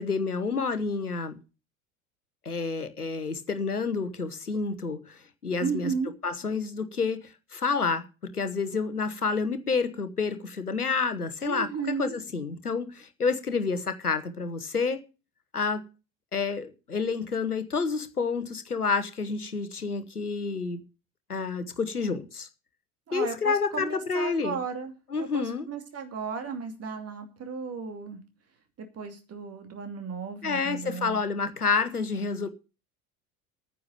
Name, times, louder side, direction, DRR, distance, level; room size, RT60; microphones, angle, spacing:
voice 1, 0.0-1.4 2.4-5.9 6.2-11.7 12.0-15.0 15.5-15.8 16.3-20.8 21.3-22.5 23.1-24.6 25.1-25.7 30.4-32.5, left 4 dB, 85° left, 1.1 m, -29 dB
voice 2, 5.6-6.1 11.4-12.2 23.1-28.2 28.8-31.2 32.0-32.2, right 5 dB, 35° right, 2.7 m, -35 dB
9.6 x 6.8 x 9.0 m
figure-of-eight pair, 70°, 44 cm